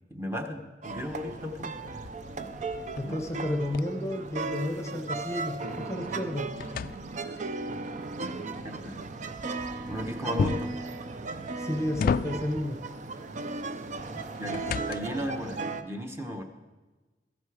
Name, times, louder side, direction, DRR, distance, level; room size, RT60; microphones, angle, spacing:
voice 1, 0.1-1.8 2.4-2.5 3.0-3.2 8.6-9.0 9.9-10.7 14.4-16.4, left 1 dB, 15° right, 4 dB, 1.0 m, -35 dB
sound 1, 0.8-15.8, right 3 dB, 45° right, 0.6 m, -36 dB
sound 2, 2.0-4.9 5.3-7.6 10.4-10.8 11.5-12.7 14.0-15.3, left 5 dB, 50° left, 0.3 m, -33 dB
voice 2, 3.0-6.5 11.6-12.8, left 1 dB, 15° left, 5 dB, 0.8 m, -32 dB
14.0 x 10.5 x 4.9 m, 1.2 s
head